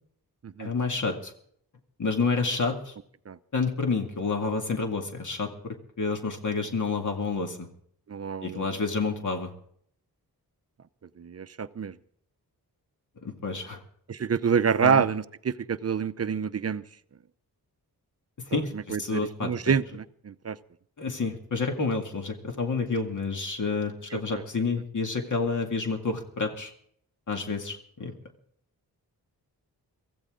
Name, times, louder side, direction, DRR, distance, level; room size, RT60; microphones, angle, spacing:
voice 1, 0.6-1.3 2.0-2.9 3.5-7.7 8.4-9.5 13.2-13.8 14.8-15.0 18.5-19.7 21.0-26.7 27.3-28.1, left 4 dB, 50° left, 3 dB, 2.2 m, -29 dB
voice 2, 8.1-8.6 11.2-12.0 14.1-16.8 18.5-20.6 24.1-24.4, right 6 dB, 40° right, 14 dB, 0.6 m, -27 dB
24.5 x 15.0 x 3.7 m, 0.64 s
wide cardioid pair, 165°, 38 cm